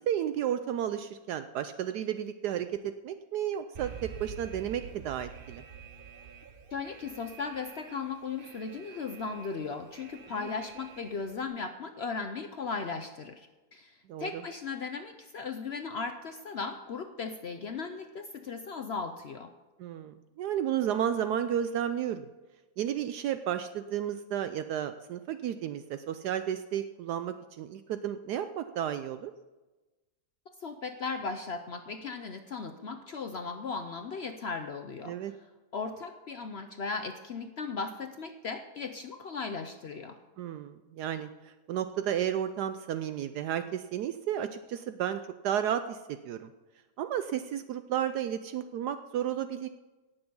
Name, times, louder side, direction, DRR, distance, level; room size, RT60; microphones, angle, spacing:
voice 1, 0.0-5.6 10.4-10.5 14.1-14.4 19.8-22.3 22.8-29.3 35.0-35.3 40.4-46.5 47.0-49.7, right 10 dB, 75° right, 10 dB, 1.1 m, -32 dB
Alarm, 3.8-11.5, right 7 dB, 45° right, 0.7 m, -48 dB
voice 2, 6.7-19.5 30.6-35.4 35.7-40.2, left 4 dB, 65° left, 7 dB, 0.6 m, -37 dB
18.0 x 7.0 x 5.4 m, 1.1 s
omnidirectional pair, 1.9 m